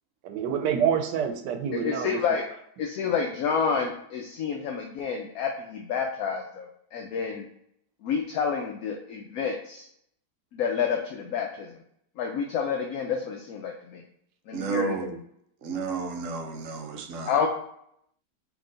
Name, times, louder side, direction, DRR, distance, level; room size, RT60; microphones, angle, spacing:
voice 1, 0.2-2.4 3.0-3.1, right 8 dB, 80° right, 6 dB, 1.2 m, -27 dB
voice 2, 1.7-2.4 2.8-6.7 6.9-7.5 8.0-9.9 10.5-11.7 12.2-14.0 14.5-15.0 17.3-17.5, left 6 dB, 70° left, 2 dB, 0.9 m, -29 dB
voice 3, 14.5-15.2 15.6-17.3, right 4 dB, 60° right, 3 dB, 0.8 m, -32 dB
3.9 x 2.9 x 3.8 m, 0.72 s
omnidirectional pair, 1.8 m